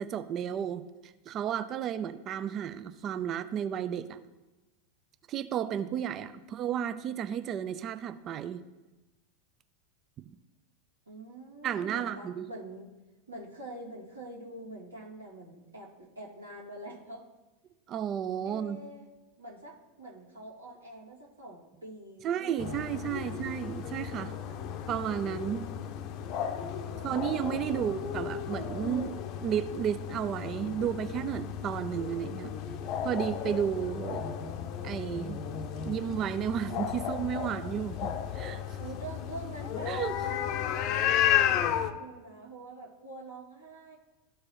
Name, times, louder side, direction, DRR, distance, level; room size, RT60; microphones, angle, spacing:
voice 1, 0.0-4.2 5.3-8.6 11.6-12.5 17.9-18.8 22.2-24.3 24.9-25.7 27.0-29.2 29.4-32.5 33.0-34.2 34.8-35.4 35.9-38.6 39.9-40.1, right 9 dB, 35° right, 12 dB, 0.4 m, -33 dB
voice 2, 5.8-6.5 11.1-12.9 13.3-17.3 18.4-19.1 19.4-23.4 24.2-24.8 26.9-28.1 38.8-44.0, right 1 dB, 85° right, -4 dB, 2.0 m, -46 dB
sound 1, 22.6-41.9, left 9 dB, 45° left, 0.6 m, -33 dB
13.5 x 4.7 x 3.0 m, 1.1 s
figure-of-eight pair, 85°, 0 cm